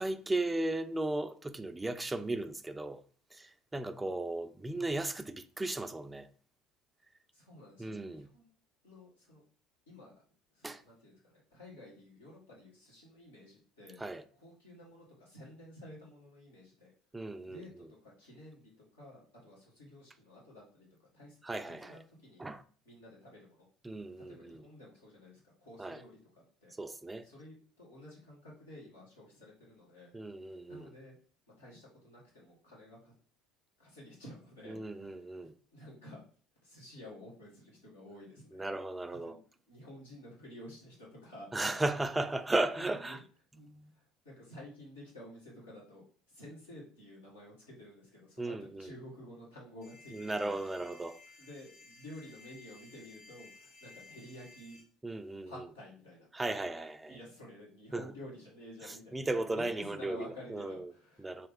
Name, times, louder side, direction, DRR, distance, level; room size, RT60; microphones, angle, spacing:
voice 1, 0.0-3.0 3.3-6.3 7.8-8.3 10.6-10.8 14.0-14.2 17.1-17.7 21.4-22.0 22.4-22.6 23.8-24.6 25.8-26.0 26.8-27.3 30.1-30.9 34.7-35.5 38.5-39.4 41.5-43.2 43.6-43.9 48.4-48.9 50.1-51.2 55.0-55.5 56.3-57.2 57.9-58.0 58.8-60.9 61.2-61.5, right 2 dB, 15° right, 0.3 m, -36 dB
voice 2, 7.3-8.5 8.8-9.4 9.9-10.1 10.5-14.0 14.3-16.9 17.4-20.9 21.1-21.4 21.7-22.4 22.8-23.7 24.2-26.7 27.2-30.1 30.7-31.2 31.5-33.1 33.8-36.2 36.6-38.7 39.2-39.4 39.7-41.5 42.9-43.2 43.5-50.6 51.4-54.8 55.5-56.3 57.1-59.2 59.5-61.5, left 1 dB, 85° left, 1.5 m, -52 dB
sound 1, 49.8-54.8, left 4 dB, 65° left, 1.8 m, -56 dB
3.2 x 2.8 x 3.5 m
figure-of-eight pair, 65°, 0 cm